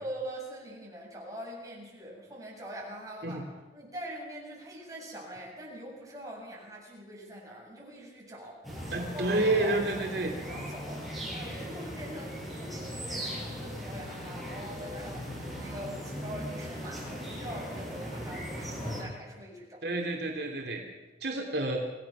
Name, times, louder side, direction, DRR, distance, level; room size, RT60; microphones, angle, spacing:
voice 1, 0.0-3.5 3.7-19.8, right 1 dB, 20° right, -3 dB, 7.6 m, -43 dB
sound 1, 8.6-19.0, equal, ahead, 7.8 m, -38 dB
voice 2, 8.9-10.3 19.8-20.8 21.2-21.8, right 2 dB, 70° right, 1 dB, 2.6 m, -29 dB
27.5 x 18.0 x 6.1 m, 1.2 s
head